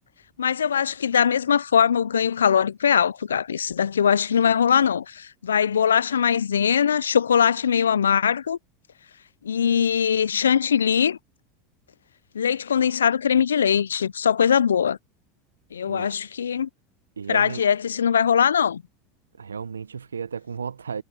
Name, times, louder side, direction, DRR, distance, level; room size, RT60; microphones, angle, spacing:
voice 1, 0.4-8.6 9.4-11.2 12.3-15.0 15.7-16.7 17.3-18.8, left 7 dB, 85° left, 0.4 m, -21 dB
voice 2, 17.2-17.6 19.4-21.0, right 6 dB, 85° right, 0.8 m, -33 dB
hypercardioid pair, 80°, 0 cm